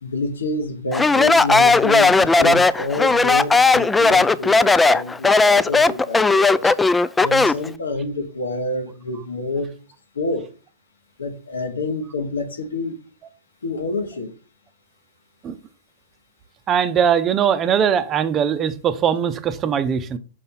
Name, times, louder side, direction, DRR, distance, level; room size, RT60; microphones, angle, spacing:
voice 1, 0.0-6.7 7.2-9.7 10.1-10.5 11.2-13.0 13.6-14.3, left 2 dB, 85° left, 1.2 m, -27 dB
Speech, 0.9-7.7, left 3 dB, 10° left, 0.3 m, -16 dB
voice 2, 16.7-20.2, right 8 dB, 30° right, 0.7 m, -20 dB
5.4 x 4.2 x 5.5 m
hypercardioid pair, 115°, 0 cm